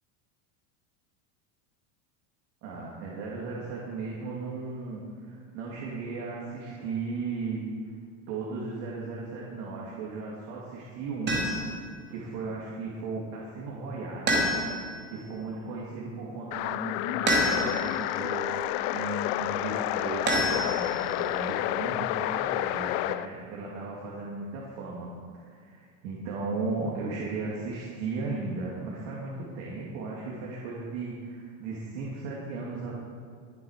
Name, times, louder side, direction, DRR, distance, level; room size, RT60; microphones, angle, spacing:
voice 1, 2.6-7.6 8.3-11.4 12.1-14.5 15.1-25.1 25.4-33.0, right 3 dB, 55° right, -4 dB, 2.8 m, -36 dB
sound 1, 11.3-11.8 14.3-15.0 17.3-18.0 20.3-21.1, equal, 25° right, 2.8 m, -27 dB
sound 2, 16.5-23.3, left 15 dB, 55° left, 0.5 m, -30 dB
21.5 x 7.8 x 5.1 m, 2.2 s
supercardioid pair, 135°, 39 cm